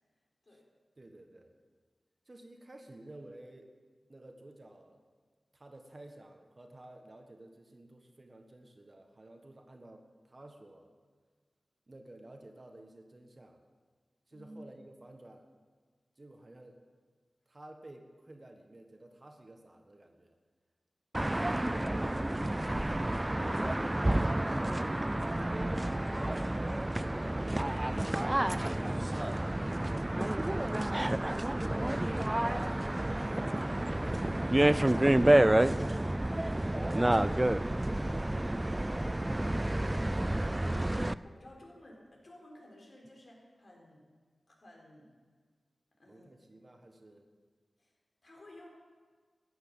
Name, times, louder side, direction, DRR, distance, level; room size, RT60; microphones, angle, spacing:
voice 1, 1.0-1.5 2.3-3.7 4.1-5.0 5.5-10.9 11.9-13.6 14.3-15.5 16.2-16.8 17.5-20.4 32.9-33.3 46.0-47.3, right 1 dB, 35° right, 4 dB, 1.5 m, -53 dB
voice 2, 14.3-14.6 23.8-24.9 25.8-32.5 33.6-36.0 36.3-38.4 38.9-40.7 41.2-44.0 44.5-45.1 46.0-46.3 47.8-47.9 48.2-48.7, left 1 dB, 50° left, -1 dB, 4.1 m, -55 dB
sound 1, 21.1-41.1, right 1 dB, 20° right, 0.4 m, -29 dB
14.5 x 9.6 x 7.1 m, 1.5 s
wide cardioid pair, 80°, 0 cm